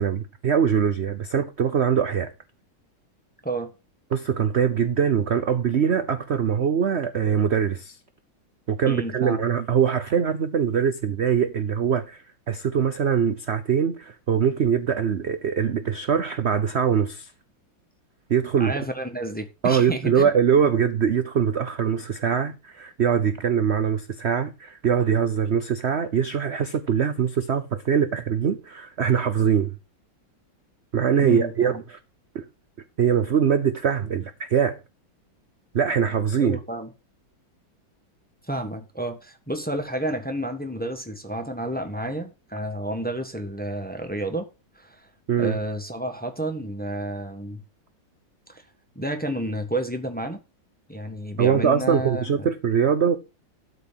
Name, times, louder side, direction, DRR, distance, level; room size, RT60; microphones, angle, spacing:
voice 1, 0.0-2.3 4.1-8.0 8.7-17.3 18.3-18.7 19.6-29.7 30.9-32.0 32.3-32.5 33.0-34.8 35.7-36.6 45.3-45.6 51.4-53.1, right 7 dB, 55° right, 0.7 m, -22 dB
voice 2, 8.9-9.4 18.6-20.3 31.2-31.8 36.4-36.9 38.5-44.5 44.8-44.9 45.4-47.6 48.5-48.6 48.9-50.4 50.9-52.5, right 1 dB, 5° left, 1.2 m, -30 dB
12.5 x 4.4 x 7.4 m
omnidirectional pair, 2.1 m